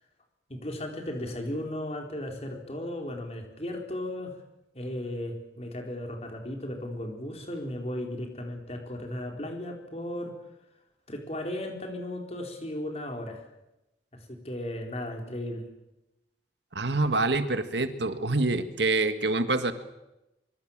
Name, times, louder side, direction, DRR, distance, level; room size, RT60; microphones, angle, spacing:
voice 1, 0.5-4.4 4.7-10.3 11.1-13.5 14.3-15.7, left 1 dB, 35° left, 3 dB, 4.5 m, -35 dB
voice 2, 16.8-19.7, right 3 dB, 70° right, 9 dB, 1.8 m, -26 dB
24.5 x 24.5 x 7.5 m, 0.94 s
head